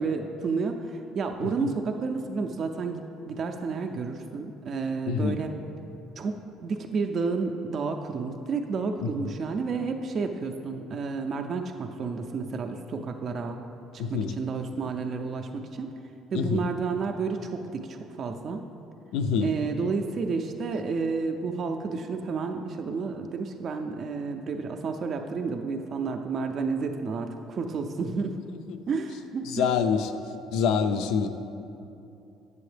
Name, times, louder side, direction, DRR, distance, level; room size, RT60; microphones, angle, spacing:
voice 1, 0.0-5.5 6.2-13.6 13.9-15.9 16.3-18.6 19.4-28.4 28.9-29.7, right 4 dB, 40° right, 4 dB, 0.3 m, -31 dB
voice 2, 5.1-5.4 9.0-9.3 14.0-14.3 16.3-16.6 19.1-19.5 28.7-28.8 29.5-30.1 30.5-31.3, left 6 dB, 80° left, 8 dB, 0.4 m, -26 dB
7.8 x 6.8 x 3.3 m, 2.7 s
cardioid pair, 135°, 0 cm